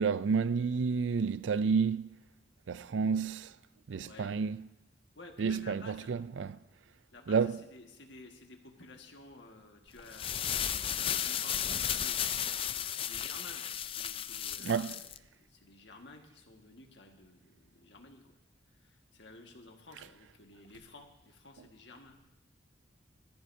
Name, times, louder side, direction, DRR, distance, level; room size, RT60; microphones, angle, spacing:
voice 1, 0.0-2.1 2.7-3.5 3.9-4.7 5.4-6.6 7.3-7.6 14.6-15.0, right 5 dB, 80° right, 0.4 m, -30 dB
voice 2, 4.0-4.3 5.1-6.1 7.1-12.2 12.6-18.4 18.8-22.2, left 2 dB, 75° left, 1.7 m, -53 dB
sound 1, 10.0-15.2, left 9 dB, 30° left, 0.3 m, -34 dB
19.5 x 14.0 x 2.7 m
head